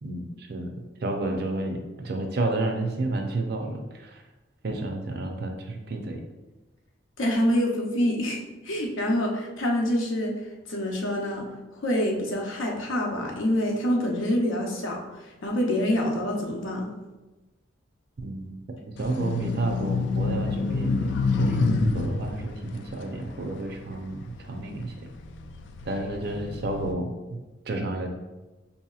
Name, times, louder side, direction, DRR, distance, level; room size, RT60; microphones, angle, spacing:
voice 1, 0.0-4.2 4.6-6.2 18.2-25.1 25.8-27.4 27.7-28.1, right 2 dB, 55° right, 4 dB, 0.5 m, -31 dB
voice 2, 7.2-10.4 10.7-11.5 11.7-15.0 15.4-16.9, left 1 dB, 90° left, 0 dB, 0.8 m, -26 dB
sound 1, 19.0-24.5 25.1-26.9, left 3 dB, 65° left, 0.3 m, -27 dB
5.4 x 2.8 x 2.3 m, 1.1 s
head